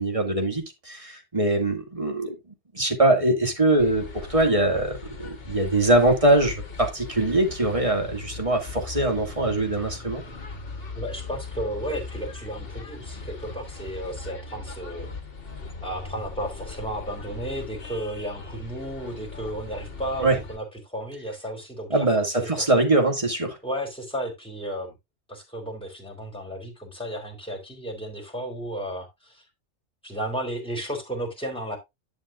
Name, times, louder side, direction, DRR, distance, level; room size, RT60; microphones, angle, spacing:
voice 1, 0.0-2.3 2.7-10.2 20.2-20.4 21.9-23.6, right 2 dB, 30° right, 2.3 m, -22 dB
sound 1, 3.8-20.6, left 4 dB, 55° left, 1.6 m, -39 dB
voice 2, 10.9-15.1 15.8-22.1 22.4-22.5 23.6-24.9 25.3-29.4 30.0-31.8, right 1 dB, 5° left, 3.6 m, -33 dB
11.0 x 6.9 x 2.5 m
omnidirectional pair, 1.2 m